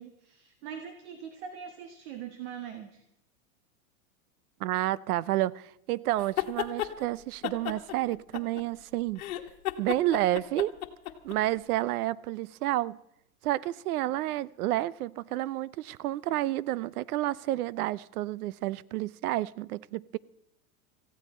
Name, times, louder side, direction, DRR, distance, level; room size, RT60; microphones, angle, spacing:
voice 1, 0.0-3.0, right 8 dB, 50° right, 1.5 m, -42 dB
voice 2, 4.6-9.2 9.8-10.7 11.2-13.0 13.4-20.2, right 15 dB, 75° right, 0.6 m, -30 dB
sound 1, 6.2-6.9 7.4-8.8 9.2-11.4, left 13 dB, 65° left, 1.4 m, -33 dB
18.0 x 15.5 x 4.3 m
supercardioid pair, 160°, 44 cm